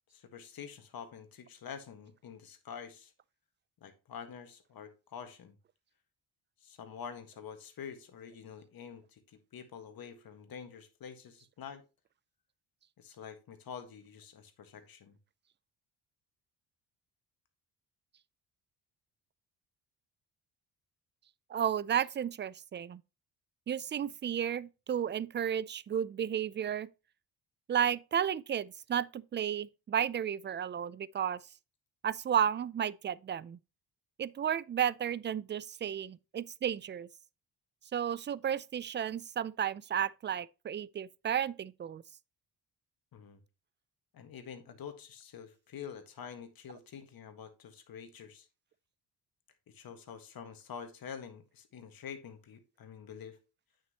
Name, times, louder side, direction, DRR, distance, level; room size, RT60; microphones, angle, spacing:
voice 1, 0.1-3.1 3.8-5.6 6.6-11.8 13.0-15.2 43.1-43.4 44.1-48.5 49.7-53.4, left 7 dB, 60° left, 1.7 m, -47 dB
voice 2, 21.5-23.0 23.7-26.9 27.7-31.4 32.0-33.6 34.2-37.1 37.9-42.0, right 9 dB, 30° right, 0.4 m, -33 dB
8.8 x 6.6 x 2.9 m
cardioid pair, 90°, 40 cm